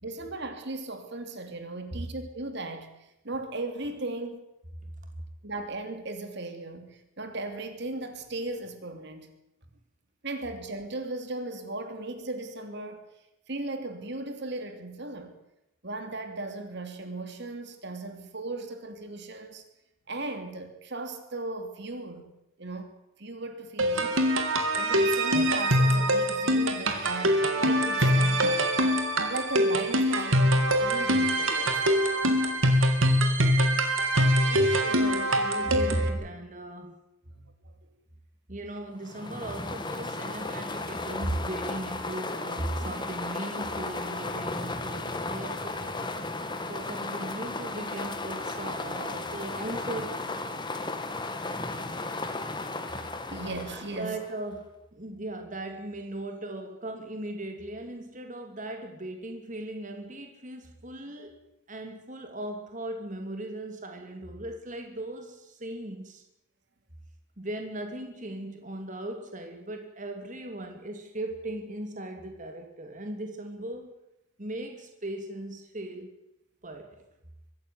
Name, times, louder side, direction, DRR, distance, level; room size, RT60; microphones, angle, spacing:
voice 1, 0.0-2.9 3.2-4.4 5.4-9.3 10.2-13.0 13.5-15.4 15.8-19.6 20.1-22.3 22.6-22.9 23.2-24.4 24.8-28.7 29.3-31.9 37.3-37.5 50.8-50.9 52.6-52.7 53.3-54.2, right 2 dB, 55° right, 7 dB, 2.9 m, -37 dB
sound 1, 23.8-36.1, equal, 70° right, 3.1 m, -24 dB
voice 2, 34.5-37.0 38.5-46.1 46.7-50.3 53.3-53.4 54.0-61.4 61.7-66.2 67.4-73.9 74.4-76.1 76.6-77.0, right 1 dB, 35° right, 4 dB, 2.8 m, -37 dB
sound 2, 39.0-54.5, left 2 dB, 20° left, 1.9 m, -35 dB
23.5 x 15.5 x 9.5 m, 0.87 s
head